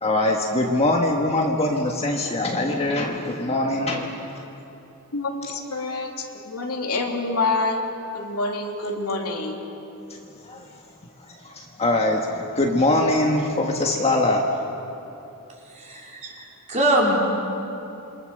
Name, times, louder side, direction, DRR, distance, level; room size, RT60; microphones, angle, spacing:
voice 1, 0.0-4.2 10.1-10.6 11.3-14.5, left 2 dB, 30° left, 0 dB, 1.6 m, -23 dB
voice 2, 5.1-9.6, left 3 dB, 80° left, 1 dB, 2.8 m, -27 dB
voice 3, 15.7-17.2, right 1 dB, 35° right, -3 dB, 4.8 m, -23 dB
28.0 x 23.5 x 6.7 m, 2.9 s
head